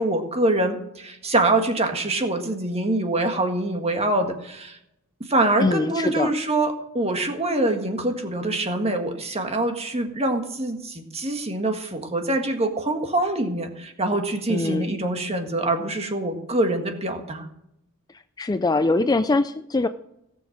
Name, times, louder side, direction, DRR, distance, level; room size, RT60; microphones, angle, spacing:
voice 1, 0.0-4.8 5.3-17.5, right 2 dB, 30° right, 5 dB, 1.7 m, -24 dB
voice 2, 5.6-6.3 14.5-14.9 18.4-19.9, left 2 dB, 15° left, 10 dB, 0.4 m, -22 dB
17.5 x 7.2 x 6.5 m, 0.81 s
head